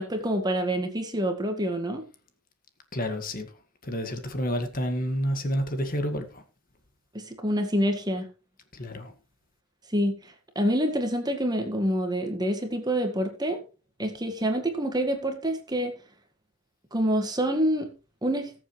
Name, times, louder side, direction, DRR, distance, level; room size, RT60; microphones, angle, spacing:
voice 1, 0.0-2.0 7.1-8.3 9.9-13.6 14.0-15.9 16.9-17.9 18.2-18.5, equal, 20° right, 1.8 m, -27 dB
voice 2, 2.9-3.5 3.8-6.4 8.7-9.1, equal, 40° left, 1.9 m, -29 dB
20.0 x 7.5 x 3.2 m
head